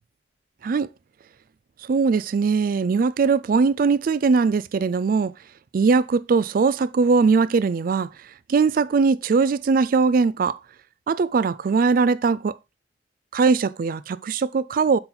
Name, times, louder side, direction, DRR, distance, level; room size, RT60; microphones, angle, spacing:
voice 1, 1.9-5.3 5.7-8.1 8.5-10.6 11.1-12.6 13.3-15.0, right 4 dB, 50° right, 0.3 m, -20 dB
7.7 x 4.0 x 4.3 m
head